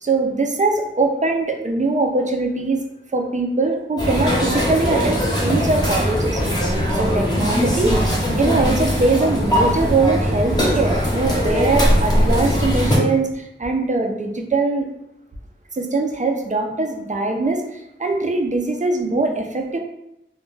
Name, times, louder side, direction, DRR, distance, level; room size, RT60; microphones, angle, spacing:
voice 1, 0.0-2.8 3.1-6.4 6.9-8.0 8.4-14.9 15.7-17.6 18.0-19.8, right 3 dB, 40° right, 3 dB, 0.4 m, -21 dB
sound 1, 4.0-13.0, equal, 20° left, 0.8 m, -20 dB
2.2 x 2.2 x 3.1 m, 0.84 s
wide cardioid pair, 55°, 20 cm